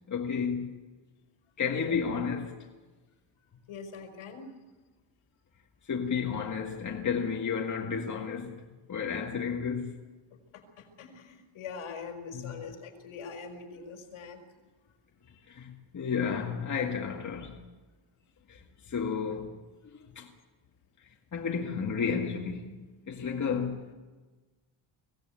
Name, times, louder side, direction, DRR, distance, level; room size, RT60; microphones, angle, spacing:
voice 1, 0.1-0.8 1.6-2.7 5.9-8.6 8.9-10.0 12.3-12.5 15.5-17.6 18.5-19.6 20.2-20.3 21.3-22.8 23.1-23.8, left 6 dB, 35° left, 2.1 m, -32 dB
voice 2, 3.7-4.5 10.5-14.4 15.2-15.4 23.5-23.6, left 5 dB, 70° left, 5.5 m, -43 dB
24.0 x 17.5 x 9.2 m
cardioid pair, 140°, 50 cm